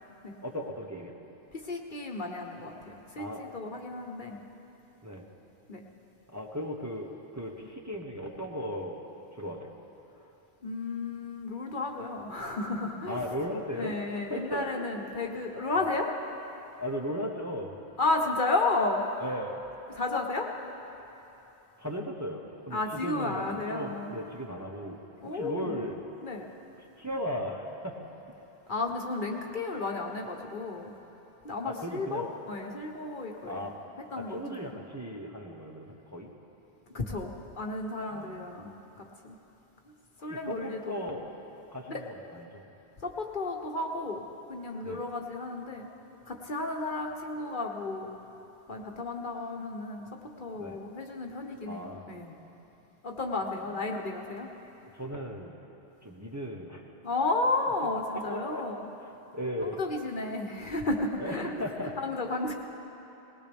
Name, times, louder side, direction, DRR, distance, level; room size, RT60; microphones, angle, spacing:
voice 1, 0.4-1.1 3.2-3.5 5.0-5.3 6.3-9.0 9.3-9.7 13.0-14.9 15.8-15.9 16.8-17.8 19.2-19.6 21.8-23.4 23.7-25.0 25.3-26.0 27.0-28.0 31.6-32.3 33.4-33.7 34.2-36.3 38.1-38.5 40.2-41.3 41.7-42.6 44.8-45.0 50.6-50.8 51.7-52.1 53.6-53.8 54.9-55.5 56.0-56.9 58.1-58.6 59.3-59.8 61.2-62.0, equal, 15° right, -1 dB, 1.0 m, -37 dB
voice 2, 1.5-4.4 5.7-5.8 10.6-13.2 13.7-16.1 18.0-19.1 19.9-20.5 22.7-24.1 25.2-25.7 26.2-26.5 28.7-30.9 31.4-33.7 34.1-34.7 36.9-39.4 40.2-41.0 41.9-42.0 43.0-44.2 44.5-45.9 46.3-48.1 48.7-50.1 50.4-52.3 53.0-54.5 57.0-58.9 59.6-61.6 62.0-62.5, left 3 dB, 50° left, 1 dB, 1.2 m, -33 dB
19.5 x 19.5 x 3.5 m, 3.0 s
omnidirectional pair, 1.1 m